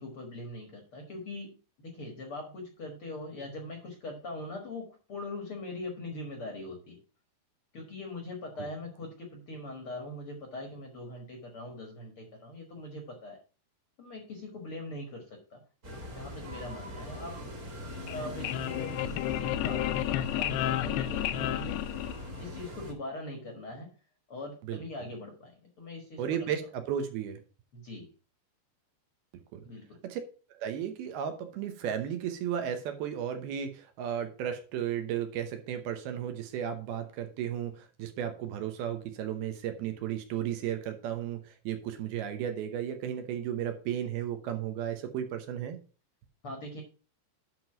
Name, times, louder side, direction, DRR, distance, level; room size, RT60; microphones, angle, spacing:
voice 1, 0.0-7.0 7.7-13.4 14.0-15.6 16.1-17.4 18.0-22.0 22.4-23.9 24.3-26.5 27.7-28.1 29.6-30.0 46.4-46.8, left 2 dB, 55° left, 2 dB, 1.5 m, -42 dB
sound 1, 15.8-22.9, equal, 30° right, 1.6 m, -42 dB
sound 2, 17.9-22.6, left 13 dB, 80° left, 2.5 m, -32 dB
voice 2, 26.2-27.4 29.5-29.7 30.0-30.2 30.5-45.8, right 9 dB, 75° right, 7 dB, 2.7 m, -34 dB
10.5 x 3.8 x 5.8 m, 0.36 s
omnidirectional pair, 4.8 m